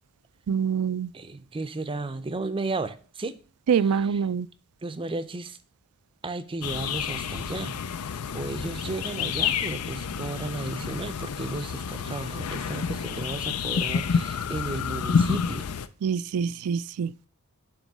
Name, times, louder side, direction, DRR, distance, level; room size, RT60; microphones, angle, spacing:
voice 1, 0.5-1.1 3.7-4.5 16.0-17.1, right 7 dB, 80° right, 0.4 m, -25 dB
voice 2, 1.1-3.4 3.8-4.2 4.8-5.6 6.2-7.8 8.3-15.7, right 3 dB, 25° right, 0.5 m, -34 dB
sound 1, 6.6-15.9, left 6 dB, 80° left, 0.5 m, -29 dB
7.4 x 3.1 x 6.1 m
head